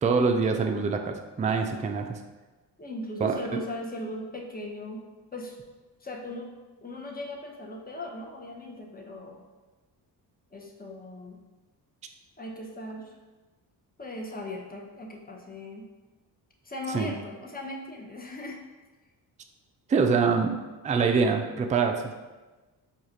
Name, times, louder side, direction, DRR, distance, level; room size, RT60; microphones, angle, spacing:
voice 1, 0.0-2.2 3.2-3.6 16.9-17.1 19.9-20.6 20.8-21.9, right 5 dB, 20° right, 4 dB, 0.3 m, -24 dB
voice 2, 2.8-5.0 5.3-5.6 6.0-6.5 6.8-9.4 10.5-11.4 12.4-13.1 14.0-15.8 16.6-18.6, left 1 dB, 20° left, 0 dB, 0.8 m, -38 dB
4.7 x 2.4 x 2.8 m, 1.2 s
supercardioid pair, 60°, 46 cm